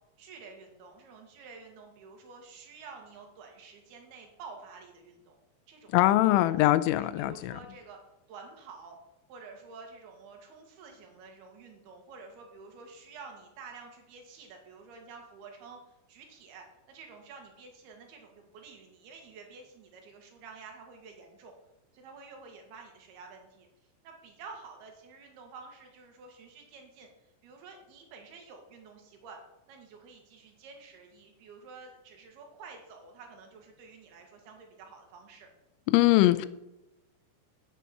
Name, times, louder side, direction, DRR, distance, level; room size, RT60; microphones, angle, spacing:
voice 1, 0.2-5.4 5.7-6.6 7.0-8.0 8.3-9.0 9.3-21.5 21.9-23.7 24.0-29.4 29.7-35.5, right 4 dB, 65° right, 3 dB, 3.4 m, -50 dB
voice 2, 5.9-7.6 35.9-36.5, left 16 dB, 90° left, 14 dB, 3.0 m, -22 dB
9.2 x 8.2 x 5.9 m, 0.90 s
omnidirectional pair, 5.3 m